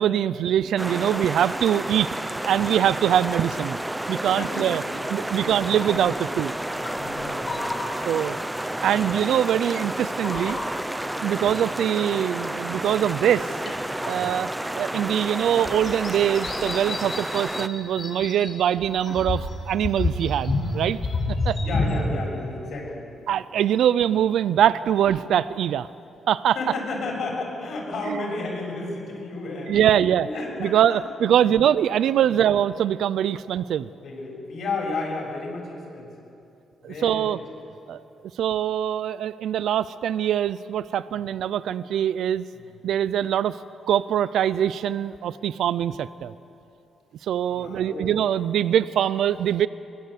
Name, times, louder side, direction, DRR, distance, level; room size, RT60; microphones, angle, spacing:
voice 1, 0.0-2.1 2.4-3.8 4.1-4.8 5.1-6.5 8.1-8.4 8.8-10.6 11.2-13.5 14.1-14.5 14.7-21.0 21.4-21.6 23.3-25.9 26.3-26.6 28.0-28.2 29.7-30.3 30.6-33.9 36.8-37.4 37.9-38.0 38.4-42.4 42.8-43.6 43.9-46.3 47.2-49.7, right 10 dB, 80° right, 16 dB, 0.5 m, -23 dB
sound 1, 0.8-17.7, right 1 dB, 10° right, 0.8 m, -31 dB
voice 2, 4.4-5.8 6.6-7.8 14.0-14.2 17.0-17.1 21.6-23.1 24.5-24.6 26.5-31.0 31.4-31.5 32.2-32.4 34.0-36.1 36.8-37.4 41.0-41.2 42.5-42.7 47.5-48.1, left 3 dB, 65° left, -1 dB, 7.3 m, -33 dB
sound 2, 5.8-6.3 6.8-8.6 8.9-9.8 10.0-11.0 11.9-12.0 13.3-14.2 15.2-15.3 15.6-18.6 18.8-22.1, left 3 dB, 45° left, 4.3 m, -30 dB
22.0 x 22.0 x 8.3 m, 2.7 s
cardioid pair, 105°, 0 cm